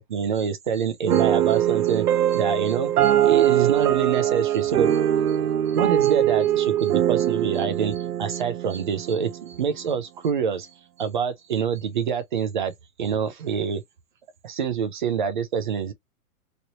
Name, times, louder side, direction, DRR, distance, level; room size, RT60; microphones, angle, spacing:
voice 1, 0.1-5.0 5.3-5.4 5.7-10.7 11.0-12.7 13.0-13.8 14.4-15.9, right 7 dB, 35° right, 0.4 m, -26 dB
sound 1, 1.1-9.6, right 11 dB, 90° right, 0.7 m, -22 dB
3.0 x 2.6 x 2.7 m
hypercardioid pair, 165°, 44 cm